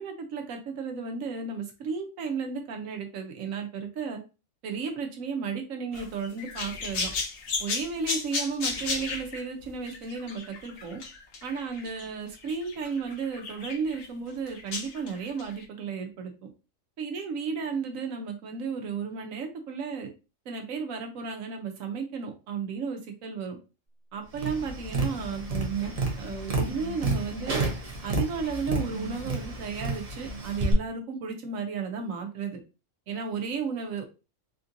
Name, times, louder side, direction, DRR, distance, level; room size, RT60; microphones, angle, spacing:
voice 1, 0.0-4.2 4.6-7.1 7.6-11.0 11.4-16.5 17.0-20.1 20.5-23.6 24.1-25.9 26.2-27.6 28.0-32.6 33.1-34.0, right 5 dB, 80° right, 3 dB, 1.1 m, -33 dB
sound 1, 5.9-12.1 12.4-14.1 14.5-15.6, left 4 dB, 55° left, 0.8 m, -34 dB
Tap, 24.3-30.7, right 3 dB, 40° right, 0.6 m, -31 dB
3.5 x 2.6 x 2.5 m, 0.31 s
omnidirectional pair, 1.4 m